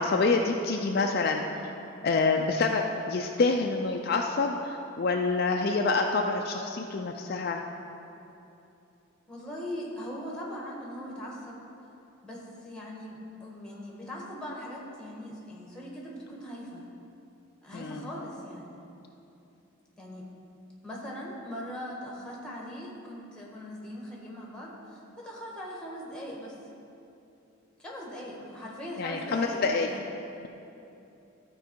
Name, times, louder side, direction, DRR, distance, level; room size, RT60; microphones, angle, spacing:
voice 1, 0.0-1.4 2.0-7.6 17.7-18.1 29.0-29.9, left 3 dB, 50° left, 2 dB, 0.4 m, -27 dB
voice 2, 9.3-11.6 12.2-16.8 17.6-18.9 20.0-20.3 20.8-26.6 27.8-30.0, equal, 5° left, -3 dB, 1.4 m, -40 dB
13.5 x 4.7 x 4.5 m, 2.8 s
head